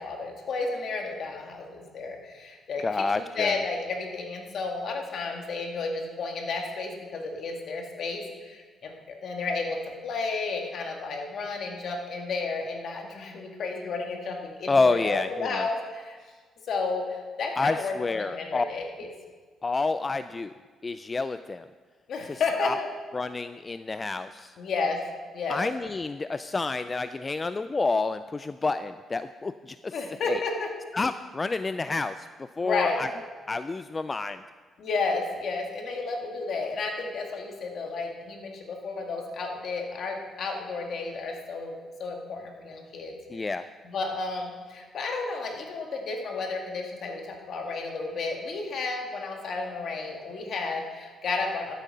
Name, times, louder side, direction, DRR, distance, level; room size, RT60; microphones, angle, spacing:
voice 1, 0.0-2.8 3.4-9.8 10.0-16.2 16.7-18.8 22.1-22.9 24.6-25.0 25.3-25.6 29.9-30.7 32.6-33.0 34.8-43.5 43.8-51.7, left 4 dB, 60° left, 2 dB, 2.0 m, -32 dB
voice 2, 2.8-3.6 14.7-15.7 17.6-18.6 19.6-20.5 20.8-21.7 22.3-22.8 23.1-24.5 25.5-29.9 30.3-30.4 30.9-32.3 32.6-33.1 33.5-34.4 43.3-43.7, left 3 dB, 25° left, 12 dB, 0.3 m, -29 dB
13.0 x 8.3 x 5.4 m, 1.5 s
cardioid pair, 90°, 0 cm